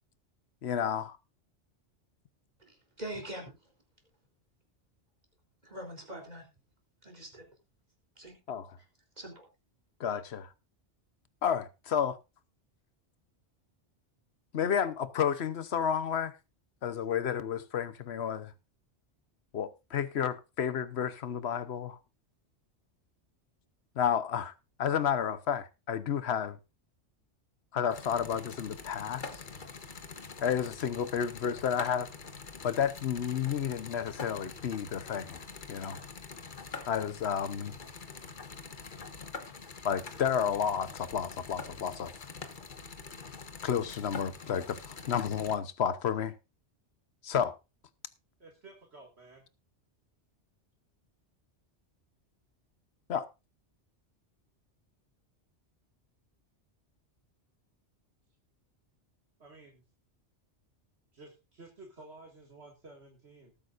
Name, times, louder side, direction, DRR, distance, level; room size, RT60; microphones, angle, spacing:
voice 1, 0.6-1.2 8.5-8.7 10.0-10.5 11.4-12.2 14.5-16.3 16.8-18.5 19.5-22.0 24.0-24.5 24.8-26.6 27.7-29.2 30.4-32.1 32.6-36.0 36.9-37.7 39.8-42.1 43.6-46.3 47.2-47.5 53.1-53.2, left 8 dB, 70° left, 1.1 m, -31 dB
voice 2, 2.7-3.5 5.6-6.5 7.0-7.4 8.2-8.4 9.2-9.5, right 1 dB, 35° right, 3.7 m, -43 dB
sound 1, 27.9-45.6, left 4 dB, 45° left, 1.3 m, -45 dB
voice 3, 48.4-49.4 59.4-59.8 61.1-63.5, right 2 dB, 65° right, 2.4 m, -52 dB
19.5 x 8.9 x 2.6 m
omnidirectional pair, 1.2 m